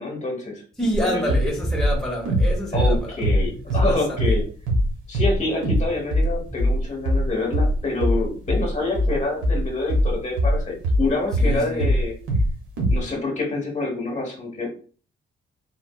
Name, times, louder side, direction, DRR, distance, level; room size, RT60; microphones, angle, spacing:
voice 1, 0.0-0.6 1.0-1.3 2.7-4.4 5.1-12.1 12.9-14.7, left 2 dB, 35° left, 1.1 m, -27 dB
voice 2, 0.8-3.1 3.7-4.2 11.4-11.9, right 1 dB, ahead, 0.9 m, -27 dB
sound 1, 0.9-1.0 1.3-1.5 1.8-3.9 4.2-4.4 4.7-4.9 5.1-5.4 5.6-5.9 6.1-11.6 11.8-12.5 12.8-13.0, equal, 85° right, 1.1 m, -20 dB
3.5 x 2.6 x 2.2 m
cardioid pair, 90°, 20 cm